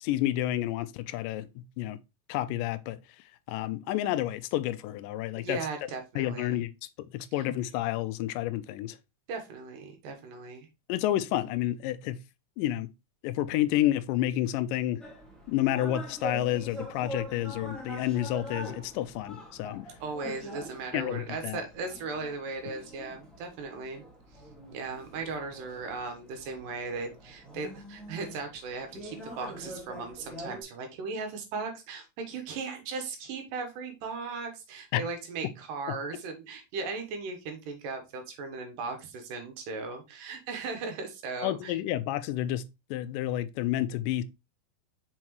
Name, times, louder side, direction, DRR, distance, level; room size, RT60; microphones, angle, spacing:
voice 1, 0.0-2.0 2.3-3.0 3.5-5.6 6.2-6.7 7.0-9.0 10.9-12.2 12.6-12.9 13.2-15.0 15.5-19.9 20.9-21.6 34.9-35.0 35.9-36.0 41.4-42.6 42.9-44.2, left 13 dB, 85° left, 2.2 m, -30 dB
voice 2, 5.4-6.6 9.3-10.7 20.0-24.0 24.7-41.8, right 4 dB, 80° right, 2.9 m, -37 dB
sound 1, 15.0-30.6, equal, ahead, 0.7 m, -44 dB
5.8 x 5.4 x 3.1 m
omnidirectional pair, 3.8 m